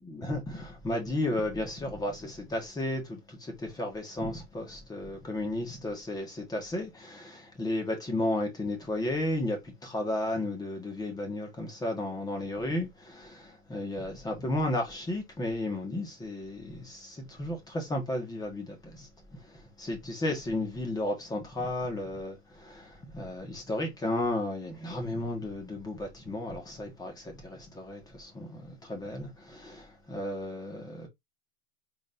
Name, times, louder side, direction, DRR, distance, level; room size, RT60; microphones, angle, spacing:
voice 1, 0.0-31.1, left 1 dB, 15° left, 1.5 m, -34 dB
4.1 x 3.8 x 2.6 m
supercardioid pair, 135°, 29 cm